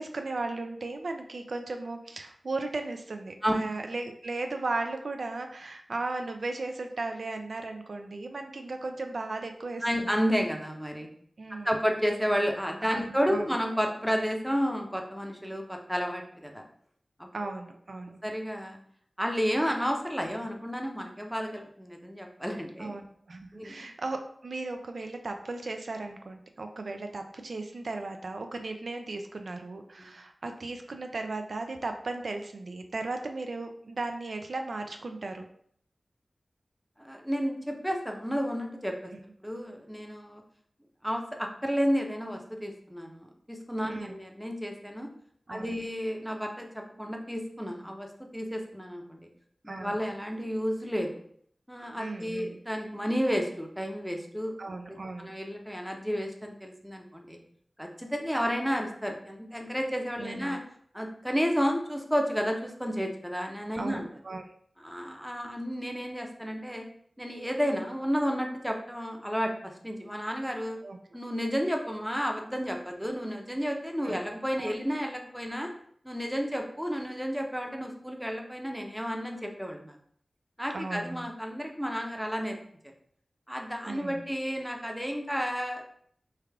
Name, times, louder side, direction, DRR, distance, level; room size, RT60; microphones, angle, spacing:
voice 1, 0.0-10.1 11.4-11.7 12.8-13.5 17.3-18.2 22.8-35.5 39.1-39.2 43.9-44.2 45.5-45.8 49.7-49.9 52.0-52.6 54.6-55.3 60.2-60.6 63.8-64.5 70.8-71.0 73.9-74.2 74.6-74.7 80.7-81.3 83.8-84.2, right 3 dB, 75° right, 5 dB, 0.3 m, -36 dB
voice 2, 9.8-11.1 11.6-16.6 17.2-17.3 18.2-18.8 19.2-22.9 23.5-23.9 30.0-30.1 37.0-39.1 39.4-40.4 41.0-45.1 45.5-49.3 49.6-51.2 51.7-54.5 55.2-57.4 57.8-60.6 60.9-64.1 64.8-66.8 67.2-70.8 71.1-75.7 76.0-80.0 80.6-82.6 83.5-86.0, equal, 5° right, 2 dB, 0.6 m, -31 dB
3.3 x 2.4 x 3.4 m, 0.64 s
wide cardioid pair, 60°, 0 cm